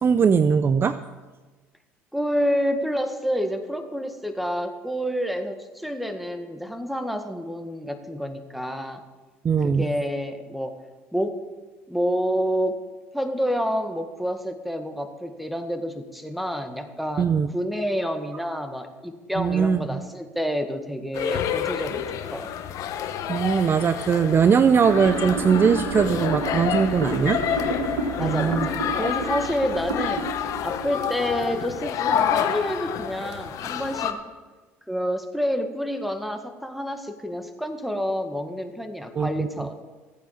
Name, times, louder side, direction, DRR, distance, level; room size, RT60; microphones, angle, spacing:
voice 1, 0.0-1.0 9.4-9.9 17.2-17.5 19.4-20.0 23.3-27.4 28.2-28.7 39.2-39.7, right 6 dB, 35° right, 12 dB, 0.6 m, -20 dB
voice 2, 2.1-9.0 9.6-10.8 11.1-11.4 11.9-12.8 13.1-22.5 28.2-30.3 30.6-34.2 34.9-39.8, equal, ahead, 7 dB, 1.8 m, -28 dB
sound 1, 21.1-34.1, left 9 dB, 55° left, 1.1 m, -29 dB
sound 2, 24.8-31.9, right 1 dB, 90° right, 3.4 m, -31 dB
15.0 x 9.0 x 7.4 m, 1.3 s
hypercardioid pair, 65°, 7 cm